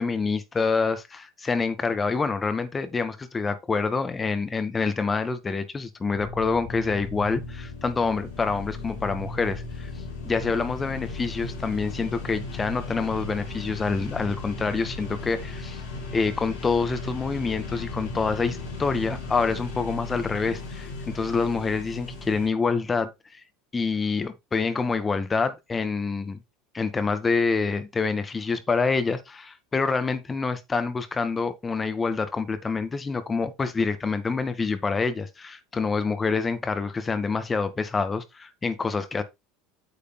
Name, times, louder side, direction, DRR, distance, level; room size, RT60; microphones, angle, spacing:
voice 1, 0.0-9.9 10.2-15.8 16.1-23.1 23.7-26.4 26.7-39.2, left 4 dB, 20° left, 1.9 m, -27 dB
sound 1, 6.1-22.5, left 3 dB, 65° left, 4.8 m, -36 dB
9.3 x 8.2 x 2.3 m
hypercardioid pair, 75°, 0 cm